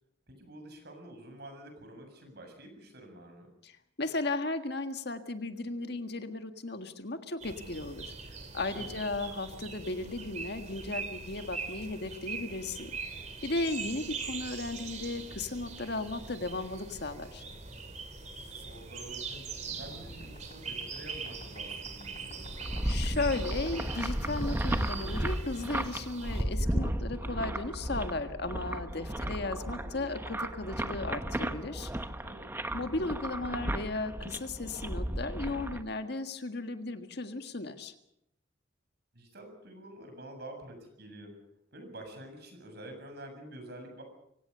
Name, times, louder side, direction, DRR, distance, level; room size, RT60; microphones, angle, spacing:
voice 1, 0.3-3.5 8.5-9.0 18.3-23.0 29.0-29.5 32.0-32.5 39.1-41.3 41.7-44.0, right 1 dB, 55° right, 5 dB, 7.2 m, -48 dB
voice 2, 3.6-8.1 8.5-13.0 13.4-17.4 22.8-31.9 32.7-37.9, left 2 dB, 60° left, 7 dB, 1.7 m, -35 dB
sound 1, 7.4-26.4, right 4 dB, 40° right, 3.0 m, -42 dB
sound 2, 19.7-27.6 28.8-30.1, left 1 dB, 40° left, 3.0 m, -52 dB
sound 3, 22.4-35.8, right 1 dB, 10° right, 1.1 m, -34 dB
25.0 x 17.0 x 6.7 m, 0.78 s
head